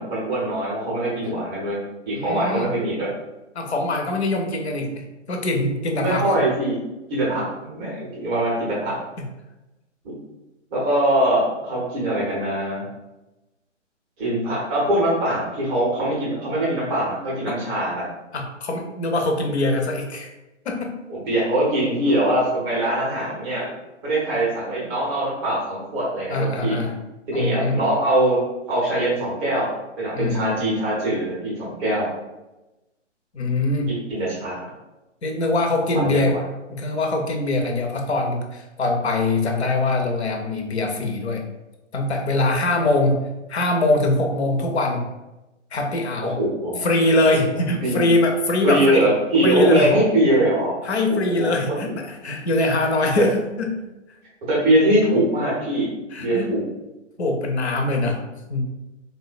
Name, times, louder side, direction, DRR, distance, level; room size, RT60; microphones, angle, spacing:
voice 1, 0.0-1.8 2.1-3.1 6.0-6.7 7.1-8.9 10.0-10.1 10.7-12.8 14.2-18.1 21.1-23.7 24.0-26.7 27.3-28.4 28.7-29.7 30.0-32.1 33.9-34.7 35.9-36.4 46.2-46.9 47.8-48.0 48.6-50.7 51.1-51.5 53.2-53.3 54.5-55.9 56.1-56.6, right 1 dB, 15° right, -6 dB, 0.6 m, -22 dB
voice 2, 2.1-2.7 3.5-6.3 17.5-17.6 18.3-20.3 20.7-21.0 26.3-26.9 27.3-27.8 30.1-30.5 33.3-33.9 35.2-36.4 36.7-41.4 41.9-45.0 45.7-46.4 46.8-49.1 49.4-50.0 50.8-53.8 56.1-56.5 57.2-58.2 58.5-58.6, left 2 dB, 60° left, 3 dB, 0.7 m, -23 dB
3.5 x 2.1 x 2.4 m, 1.0 s
figure-of-eight pair, 130°, 37 cm